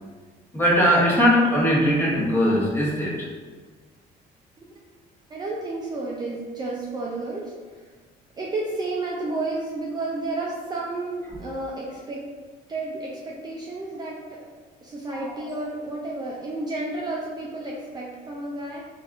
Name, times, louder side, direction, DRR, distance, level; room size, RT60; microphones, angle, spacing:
voice 1, 0.5-3.3 15.1-15.2, equal, 15° left, -6 dB, 0.9 m, -20 dB
voice 2, 5.3-7.9 8.4-12.3 12.7-14.5 14.8-18.8, right 2 dB, 25° right, -4 dB, 0.4 m, -31 dB
3.3 x 2.6 x 2.4 m, 1.4 s
cardioid pair, 110°, 17 cm